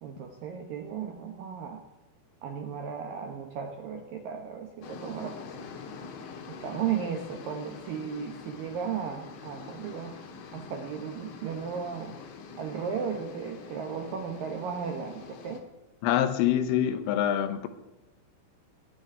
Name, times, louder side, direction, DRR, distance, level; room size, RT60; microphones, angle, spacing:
voice 1, 0.0-1.8 2.4-5.5 6.5-10.2 10.5-12.2 12.6-15.6, right 7 dB, 75° right, 2.1 m, -35 dB
sound 1, 4.8-15.6, left 5 dB, 70° left, 3.7 m, -45 dB
voice 2, 16.0-17.7, left 10 dB, 90° left, 3.6 m, -25 dB
18.0 x 6.4 x 9.8 m
omnidirectional pair, 5.6 m